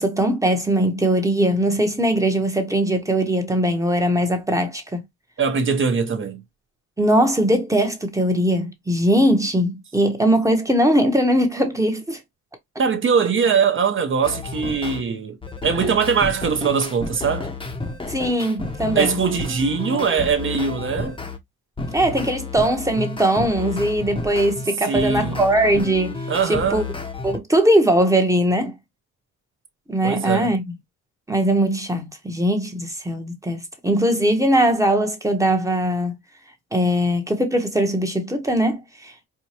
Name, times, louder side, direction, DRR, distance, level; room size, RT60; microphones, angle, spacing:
voice 1, 0.0-5.0 7.0-12.2 18.1-19.2 21.9-26.2 26.5-26.8 27.2-28.7 29.9-30.7 31.3-36.2 36.7-39.1, right 1 dB, 10° right, 1.0 m, -20 dB
voice 2, 5.4-6.4 12.8-15.4 15.6-17.5 19.0-21.2 24.9-25.4 26.3-26.9 30.0-30.5, right 6 dB, 40° right, 0.9 m, -21 dB
sound 1, 14.2-15.0 15.4-21.4 21.8-27.4, left 3 dB, 15° left, 0.8 m, -31 dB
4.6 x 2.2 x 2.8 m
cardioid pair, 90°, 30 cm